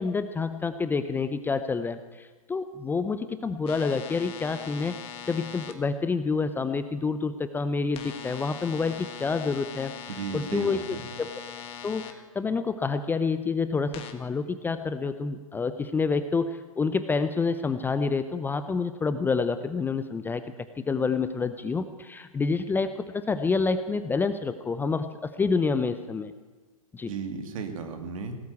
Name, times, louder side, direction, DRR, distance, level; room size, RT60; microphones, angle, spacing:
voice 1, 0.0-5.0 5.3-9.9 10.3-11.3 11.8-20.4 20.9-26.3 26.9-27.1, left 4 dB, 10° left, 11 dB, 0.6 m, -28 dB
sound 1, 3.7-5.7 7.9-12.1 13.9-14.1, left 9 dB, 30° left, 1.5 m, -41 dB
voice 2, 10.1-11.1 27.1-28.4, right 5 dB, 65° right, 6 dB, 2.4 m, -35 dB
18.0 x 8.2 x 8.4 m, 1.3 s
hypercardioid pair, 120°, 19 cm